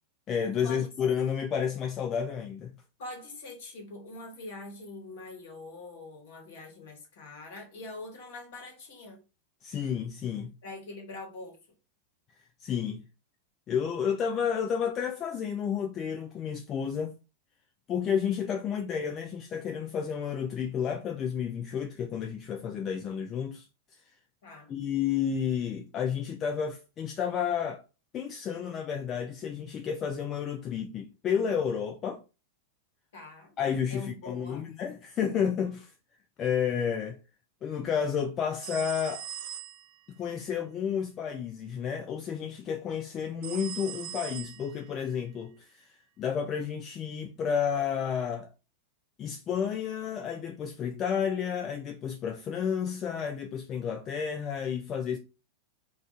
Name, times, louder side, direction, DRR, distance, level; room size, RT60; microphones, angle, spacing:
voice 1, 0.3-2.7 9.6-10.5 12.6-13.0 13.7-17.1 17.9-23.7 24.7-27.8 28.1-32.2 33.6-35.9 36.4-37.2 37.6-39.2 40.1-48.5 49.2-55.2, left 7 dB, 30° left, 0.3 m, -31 dB
voice 2, 3.0-9.2 10.6-11.6 24.4-24.7 33.1-33.5 33.9-34.7, left 2 dB, 55° left, 1.2 m, -43 dB
sound 1, 38.6-40.0 43.4-45.0, right 11 dB, 55° right, 0.3 m, -40 dB
2.4 x 2.4 x 3.9 m
figure-of-eight pair, 90°, 0 cm